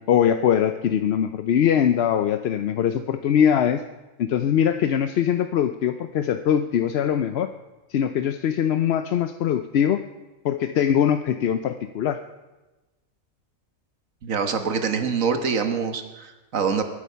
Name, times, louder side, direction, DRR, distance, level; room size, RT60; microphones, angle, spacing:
voice 1, 0.1-3.8 4.2-7.5 7.9-10.0 10.4-12.2, left 9 dB, 60° left, 9 dB, 0.8 m, -22 dB
voice 2, 14.2-16.8, right 6 dB, 80° right, 7 dB, 1.7 m, -25 dB
23.0 x 8.6 x 5.6 m, 1.1 s
omnidirectional pair, 1.4 m